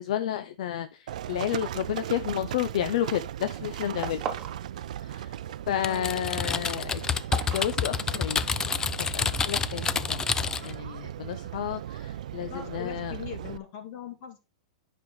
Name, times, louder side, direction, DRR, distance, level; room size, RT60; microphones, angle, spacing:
voice 1, 0.0-4.2 5.0-5.4 5.7-7.0 7.5-8.4 9.0-10.2 10.6-13.1, left 11 dB, 65° left, 0.6 m, -31 dB
Livestock farm animals working animals, 1.1-13.6, right 11 dB, 75° right, 0.5 m, -37 dB
sound 1, 2.9-3.2 3.4-4.6 4.9-5.6 5.9-8.4, right 7 dB, 20° right, 1.4 m, -38 dB
voice 2, 5.8-6.2 12.5-14.4, left 8 dB, 45° left, 2.3 m, -40 dB
Typing, 5.8-10.7, left 6 dB, 15° left, 0.4 m, -28 dB
9.6 x 5.4 x 3.9 m
hypercardioid pair, 145°, 4 cm